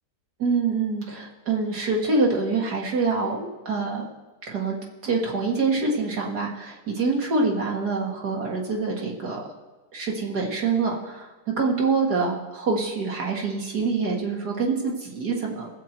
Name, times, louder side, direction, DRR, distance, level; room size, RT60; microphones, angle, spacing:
voice 1, 0.4-4.1 4.5-4.8 5.0-9.5 9.9-15.7, right 4 dB, 80° right, -1 dB, 2.4 m, -25 dB
20.0 x 7.8 x 4.5 m, 1.2 s
omnidirectional pair, 1.7 m